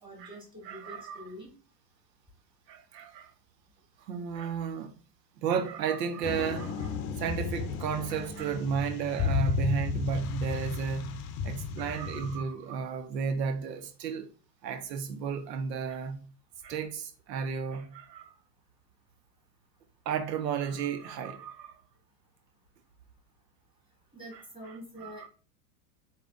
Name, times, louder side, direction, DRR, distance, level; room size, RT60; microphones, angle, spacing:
voice 1, 0.0-1.5 24.1-25.3, equal, 10° right, 2.3 m, -46 dB
voice 2, 0.6-1.2 2.7-3.3 4.1-4.9 5.4-14.3 14.6-16.2 16.6-18.3 20.1-21.7 24.3-25.3, right 6 dB, 80° right, 0.7 m, -33 dB
sound 1, 6.2-12.4, left 5 dB, 40° left, 0.6 m, -33 dB
4.7 x 2.8 x 3.5 m
hypercardioid pair, 105°, 49 cm